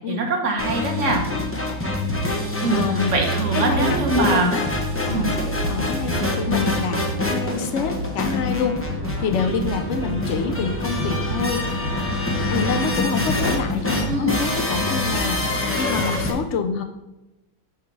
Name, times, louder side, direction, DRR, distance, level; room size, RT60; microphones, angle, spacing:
voice 1, 0.1-1.2 2.6-4.5 5.1-5.3 14.1-14.3, right 2 dB, 45° right, 1 dB, 1.5 m, -23 dB
sound 1, 0.6-16.3, left 1 dB, 15° left, 0.5 m, -25 dB
voice 2, 2.7-3.2 3.5-4.6 5.0-5.3 5.7-11.6 12.5-16.8, left 5 dB, 75° left, 6 dB, 0.6 m, -27 dB
sound 2, 3.6-10.1 10.4-12.9 13.2-14.2, equal, 70° right, 1.9 m, -34 dB
5.9 x 3.6 x 6.0 m, 0.95 s
omnidirectional pair, 1.9 m